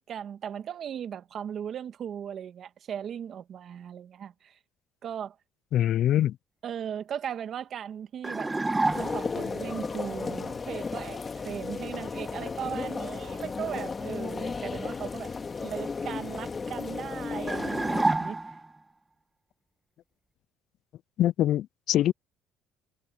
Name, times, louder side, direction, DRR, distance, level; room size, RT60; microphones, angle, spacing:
voice 1, 0.0-4.6 5.0-5.4 6.6-8.5 8.9-15.3 15.6-18.4, right 8 dB, 50° right, 1.9 m, -37 dB
voice 2, 5.7-6.4 21.2-22.1, left 12 dB, 60° left, 0.3 m, -24 dB
sound 1, 8.2-9.4 17.5-18.8, right 2 dB, 15° right, 1.6 m, -28 dB
sound 2, 8.9-18.0, left 4 dB, 30° left, 2.1 m, -34 dB
supercardioid pair, 95°, 0 cm